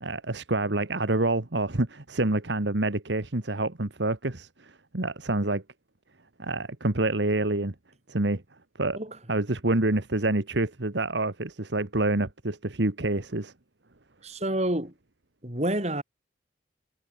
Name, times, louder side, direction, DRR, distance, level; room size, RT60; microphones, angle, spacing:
voice 1, 0.0-5.6 6.4-7.7 8.1-8.4 8.8-9.0 9.3-13.5, right 2 dB, 65° right, 1.6 m, -27 dB
voice 2, 14.2-14.9 15.4-16.0, right 1 dB, 35° right, 4.0 m, -28 dB
head